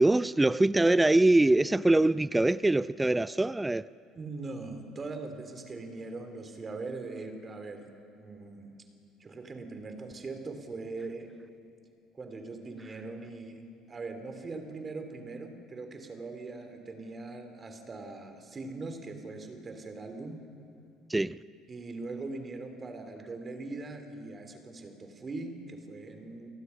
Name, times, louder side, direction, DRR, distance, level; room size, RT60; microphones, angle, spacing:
voice 1, 0.0-3.9 21.1-21.4, right 2 dB, 10° right, 0.5 m, -23 dB
voice 2, 4.1-7.8 8.2-8.7 9.2-11.3 12.1-13.6 13.9-20.4 21.7-26.5, right 3 dB, 30° right, 3.3 m, -41 dB
29.5 x 18.5 x 5.9 m
figure-of-eight pair, 60°, 0 cm